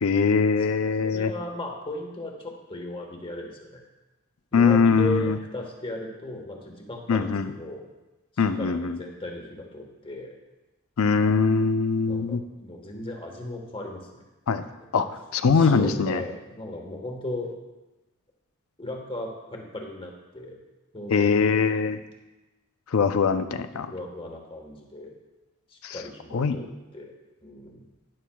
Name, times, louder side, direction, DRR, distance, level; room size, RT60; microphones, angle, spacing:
voice 1, 0.0-1.3 4.5-5.4 7.1-7.5 8.4-9.0 11.0-12.4 14.5-14.6 14.9-15.1 15.4-16.2 21.1-22.0 22.9-23.9 25.8-26.0 26.3-26.6, left 5 dB, 70° left, 10 dB, 0.5 m, -22 dB
voice 2, 1.0-3.8 4.5-7.9 8.3-10.4 12.1-14.3 15.5-17.5 18.8-20.6 20.9-21.5 23.7-25.1 25.7-27.1 27.4-27.8, left 1 dB, 25° left, 1 dB, 1.3 m, -36 dB
12.0 x 10.0 x 2.3 m, 1.1 s
head